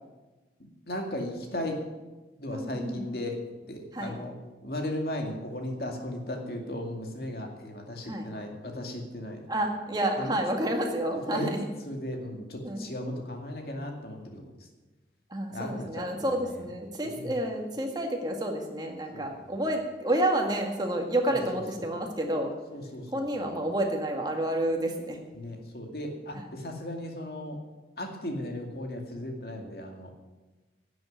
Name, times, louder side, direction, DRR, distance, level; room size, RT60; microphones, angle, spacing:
voice 1, 0.9-1.8 2.4-3.4 3.6-4.3 4.6-9.4 10.2-10.4 11.3-11.5 11.9-14.4 15.5-16.6 17.0-17.4 19.1-19.3 22.7-23.6 25.3-27.6 28.0-30.1, left 1 dB, 60° left, 2 dB, 2.2 m, -36 dB
voice 2, 2.5-3.1 3.9-4.2 8.0-8.3 9.5-11.6 12.6-12.9 15.3-22.5 23.1-25.2 26.3-26.5, right 1 dB, 25° right, 2 dB, 1.8 m, -29 dB
11.0 x 7.8 x 9.4 m, 1.1 s
head